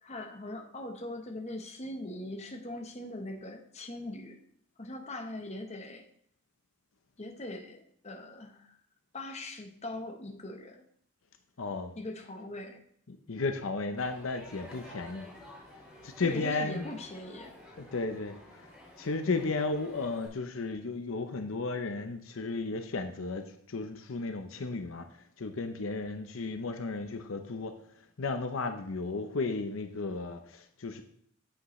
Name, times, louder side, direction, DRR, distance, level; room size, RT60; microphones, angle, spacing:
voice 1, 0.0-4.4 4.8-6.0 7.2-8.8 9.1-10.8 12.0-12.8 16.2-17.5, left 1 dB, 35° left, 3 dB, 1.0 m, -41 dB
voice 2, 11.6-11.9 13.1-15.3 16.0-16.9 17.8-18.7 19.0-25.1 25.4-27.8 28.2-31.0, left 3 dB, 75° left, 7 dB, 0.7 m, -34 dB
Crowd, 14.0-20.3, left 1 dB, 5° right, 3.0 m, -51 dB
8.6 x 7.8 x 3.2 m, 0.65 s
head